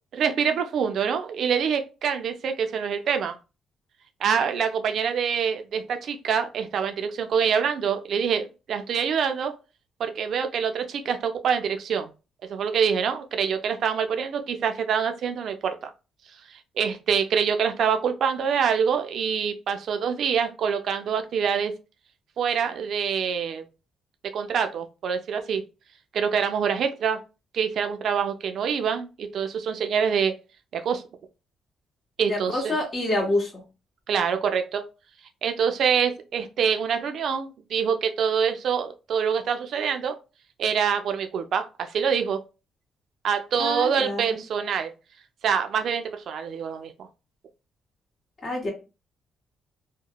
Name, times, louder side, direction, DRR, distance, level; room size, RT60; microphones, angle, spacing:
voice 1, 0.1-3.4 4.2-9.6 10.0-12.1 12.5-15.8 16.8-21.7 22.4-23.6 24.3-25.6 26.1-27.2 27.5-30.3 30.7-31.0 32.2-32.7 34.1-34.8 35.4-40.2 40.6-42.4 43.2-44.9 45.4-46.9, right 7 dB, 65° right, 7 dB, 0.4 m, -25 dB
voice 2, 32.3-33.6 43.6-44.4 48.4-48.7, left 2 dB, 40° left, -1 dB, 1.4 m, -27 dB
2.9 x 2.0 x 2.2 m, 0.30 s
cardioid pair, 90°, 0 cm